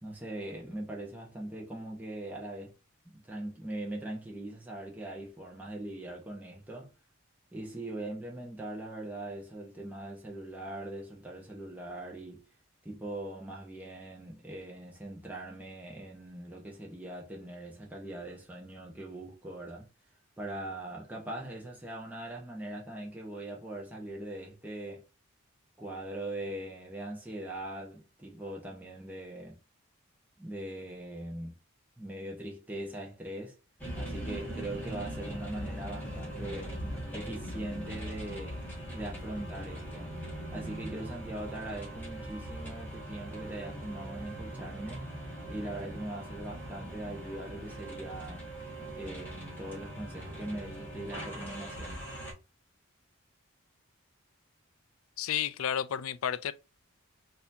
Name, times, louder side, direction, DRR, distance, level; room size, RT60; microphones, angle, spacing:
voice 1, 0.0-2.7 3.0-6.9 7.5-12.4 12.8-19.9 20.4-25.0 25.8-29.6 30.4-31.6 32.0-33.6 33.9-36.9 37.1-38.6 38.9-40.1 40.5-45.1 45.5-48.5 48.9-52.1, right 1 dB, 5° right, 0.9 m, -41 dB
sound 1, 33.8-52.3, right 1 dB, 10° left, 1.5 m, -41 dB
voice 2, 55.2-56.5, left 9 dB, 80° left, 0.4 m, -31 dB
4.1 x 2.7 x 2.6 m
head